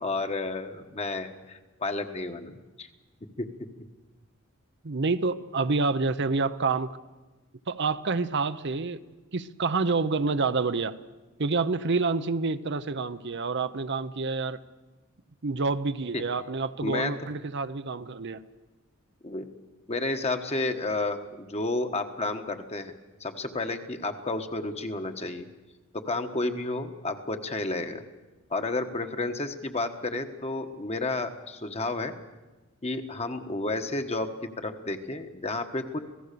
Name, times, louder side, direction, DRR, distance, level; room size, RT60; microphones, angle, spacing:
voice 1, 0.0-2.9 3.4-3.5 16.1-16.2 16.8-17.1 19.2-19.5 19.9-22.9 23.2-25.5 25.9-28.0 28.5-32.1 32.8-34.3 34.6-36.0, left 2 dB, 30° left, 6 dB, 1.4 m, -31 dB
voice 2, 4.8-6.9 7.7-9.0 9.3-11.0 11.4-14.6 15.4-18.4, right 4 dB, 55° right, 11 dB, 0.8 m, -28 dB
26.5 x 17.5 x 6.9 m, 1.2 s
head